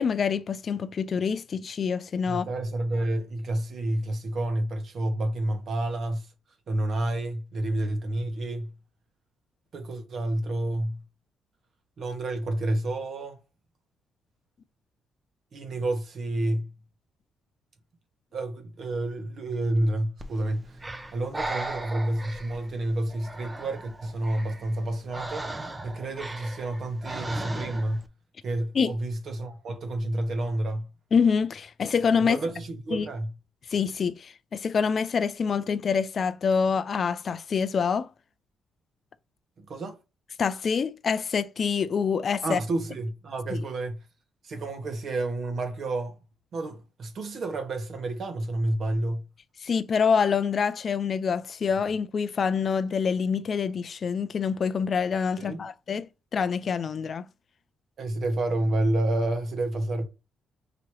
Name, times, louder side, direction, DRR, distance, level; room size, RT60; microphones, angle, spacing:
voice 1, 0.0-2.5 28.7-28.9 31.1-32.4 32.9-33.1 33.7-38.1 40.4-42.6 43.5-43.6 49.6-57.3, left 6 dB, 45° left, 0.3 m, -26 dB
voice 2, 2.3-6.3 6.7-8.7 9.7-11.0 12.0-13.4 15.5-16.7 18.3-20.8 21.1-25.5 25.8-28.0 28.4-30.9 32.2-33.3 39.6-40.0 42.4-44.0 44.4-46.1 46.5-49.3 55.4-55.6 58.0-60.1, right 1 dB, 55° right, 1.1 m, -29 dB
Breathing, 20.2-28.1, right 2 dB, 20° right, 0.6 m, -38 dB
4.9 x 2.9 x 3.0 m
cardioid pair, 90°, 0 cm